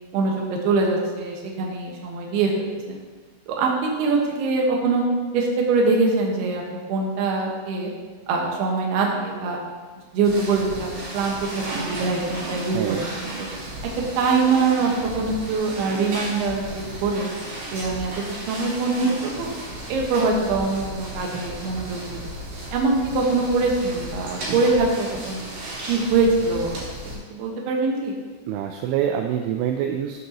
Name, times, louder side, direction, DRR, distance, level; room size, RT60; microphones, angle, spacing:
voice 1, 0.1-3.0 3.5-5.0 5.3-6.6 6.9-7.9 8.3-9.6 10.1-12.8 13.2-13.3 14.2-17.3 17.7-18.1 18.5-19.5 19.9-22.2 22.7-25.4 25.9-26.7 27.3-28.1, right 3 dB, 65° right, -1 dB, 2.9 m, -23 dB
sound 1, 10.2-27.2, right 1 dB, 50° right, 4.6 m, -34 dB
voice 2, 12.7-13.1 28.5-30.3, right 9 dB, 85° right, 4 dB, 2.8 m, -25 dB
13.0 x 8.4 x 3.0 m, 1.4 s
omnidirectional pair, 5.9 m